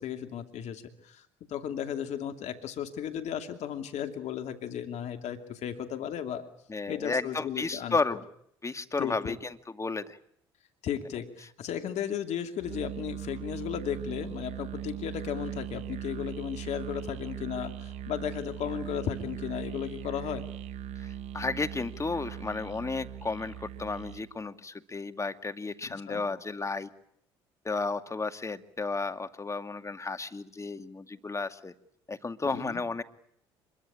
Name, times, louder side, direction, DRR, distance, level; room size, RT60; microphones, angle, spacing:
voice 1, 0.0-6.5 6.9-8.0 9.0-9.3 10.8-20.5 25.8-26.3 32.4-32.8, left 9 dB, 60° left, 7 dB, 2.7 m, -35 dB
voice 2, 6.7-8.2 8.6-10.2 21.0-26.9 27.6-31.7 32.1-33.0, left 3 dB, 20° left, 9 dB, 2.3 m, -33 dB
Musical instrument, 12.6-24.3, right 10 dB, 60° right, 1.9 m, -40 dB
26.5 x 23.0 x 8.7 m, 0.68 s
hypercardioid pair, 55°, 13 cm